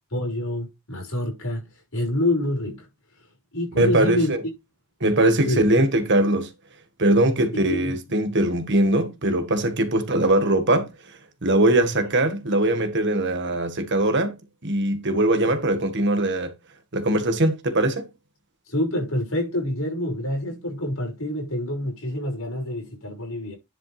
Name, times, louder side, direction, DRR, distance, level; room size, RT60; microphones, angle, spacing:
voice 1, 0.1-1.6 1.9-2.9 3.5-4.3 5.5-5.7 7.5-8.0 10.1-10.3 11.9-12.0 18.7-23.6, left 1 dB, 65° left, 5.8 m, -27 dB
voice 2, 3.8-4.4 5.0-6.5 7.0-10.9 11.4-14.3 14.6-16.5 16.9-18.1, right 1 dB, 55° right, 1.5 m, -21 dB
10.5 x 5.5 x 3.3 m
head